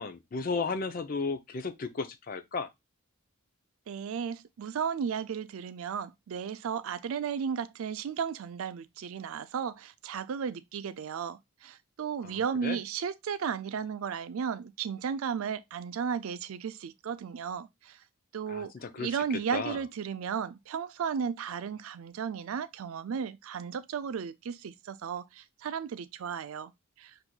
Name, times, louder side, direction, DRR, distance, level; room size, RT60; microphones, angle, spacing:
voice 1, 0.0-2.7 12.2-12.8 18.5-19.1 19.5-19.8, left 4 dB, 40° left, 0.5 m, -34 dB
voice 2, 3.9-18.0 18.3-26.7 27.0-27.1, right 7 dB, 75° right, 0.4 m, -34 dB
5.9 x 2.6 x 2.2 m
head